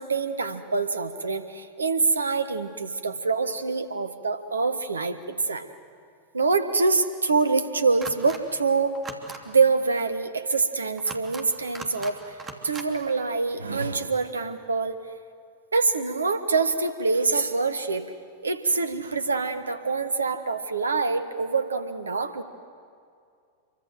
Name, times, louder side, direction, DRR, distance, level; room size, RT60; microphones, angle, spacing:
voice 1, 0.0-5.7 6.3-9.0 9.4-12.4 12.6-15.0 15.7-18.0 18.4-22.4, right 4 dB, 75° right, 11 dB, 1.4 m, -25 dB
sound 1, 8.0-8.4 8.9-9.4 11.0-11.4 11.7-12.1 12.4-12.9, right 3 dB, 20° right, 2.8 m, -39 dB
27.0 x 24.0 x 7.8 m, 2.3 s
figure-of-eight pair, 90°, 0 cm